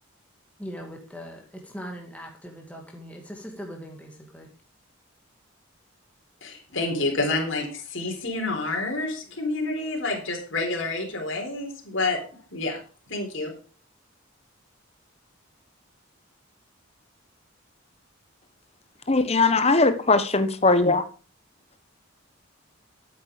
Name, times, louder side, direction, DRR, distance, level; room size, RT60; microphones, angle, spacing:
voice 1, 0.6-4.5, equal, 5° left, 2.1 m, -40 dB
voice 2, 6.4-12.2 12.5-12.8 13.1-13.5, left 2 dB, 60° left, 3.9 m, -28 dB
voice 3, 19.1-21.0, left 3 dB, 30° left, 1.1 m, -20 dB
12.5 x 8.9 x 5.1 m
head